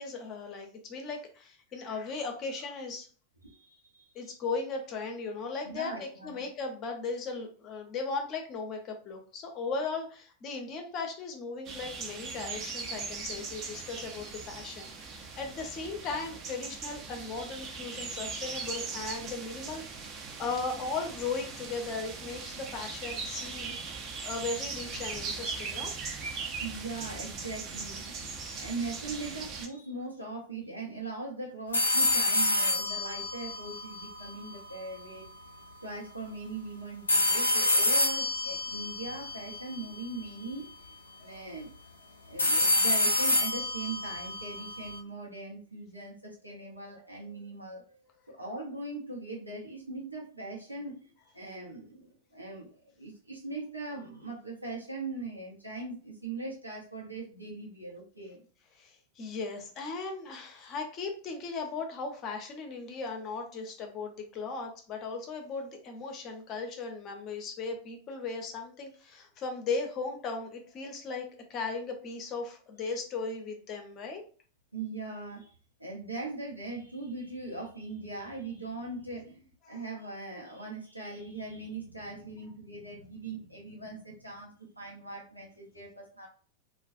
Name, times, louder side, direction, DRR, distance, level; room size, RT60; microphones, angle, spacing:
voice 1, 0.0-3.1 4.1-25.9 41.3-41.4 58.7-74.2 79.6-79.8, left 4 dB, 35° left, 4 dB, 0.6 m, -37 dB
voice 2, 3.4-4.3 5.6-6.5 26.6-35.3 35.8-41.7 42.1-48.0 48.3-58.4 74.7-75.5 75.8-86.3, right 3 dB, 85° right, -3 dB, 0.7 m, -40 dB
sound 1, 11.6-29.7, right 4 dB, 35° right, 0.5 m, -39 dB
sound 2, 31.7-34.8 37.1-40.2 42.4-45.0, left 2 dB, 75° left, 0.4 m, -28 dB
2.3 x 2.1 x 2.6 m, 0.41 s
figure-of-eight pair, 90°, 0 cm